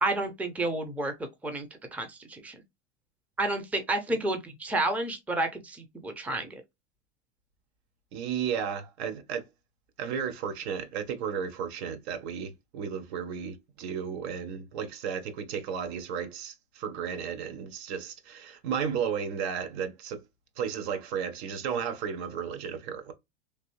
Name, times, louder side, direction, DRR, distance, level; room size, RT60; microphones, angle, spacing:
voice 1, 0.0-1.1 1.4-1.7 1.9-2.6 3.4-6.5, right 2 dB, 5° right, 0.6 m, -30 dB
voice 2, 8.1-9.4 10.0-20.2 20.6-23.1, right 7 dB, 65° right, 0.8 m, -33 dB
3.2 x 2.6 x 2.9 m
hypercardioid pair, 115°, 36 cm